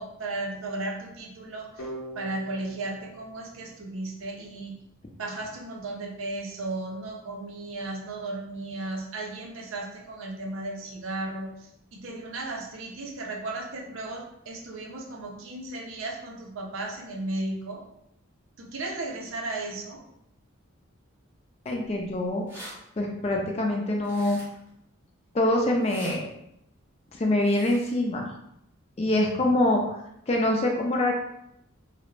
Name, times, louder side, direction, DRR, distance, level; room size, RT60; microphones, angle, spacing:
voice 1, 0.0-1.8 2.1-4.8 5.2-17.8 18.6-20.0, right 2 dB, 70° right, 0 dB, 0.5 m, -35 dB
sound 1, 1.8-4.6, right 1 dB, 80° left, 0.7 m, -43 dB
voice 2, 21.7-22.4 23.0-24.4 25.3-26.3 27.2-28.3 29.0-30.0 30.3-31.1, left 1 dB, 30° left, 0 dB, 0.3 m, -24 dB
sound 2, 22.3-22.7 24.0-24.7 25.7-26.2 27.4-27.9, equal, 10° right, 0.7 m, -44 dB
2.3 x 2.0 x 3.0 m, 0.79 s
head